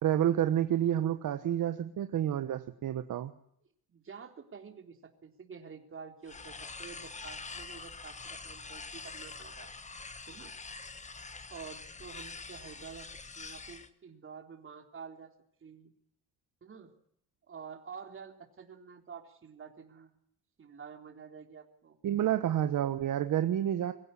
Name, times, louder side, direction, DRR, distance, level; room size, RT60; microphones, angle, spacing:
voice 1, 0.0-3.3 22.0-23.9, right 11 dB, 55° right, 9 dB, 1.3 m, -29 dB
voice 2, 3.9-9.7 10.3-10.5 11.5-13.1 13.4-15.3 15.6-15.9 16.6-16.9 17.4-20.2 20.6-22.0, right 6 dB, 35° right, 4 dB, 3.7 m, -49 dB
sound 1, 6.2-13.9, left 4 dB, 20° left, 1.3 m, -45 dB
24.0 x 16.0 x 9.8 m, 0.70 s
cardioid pair, 145°, 38 cm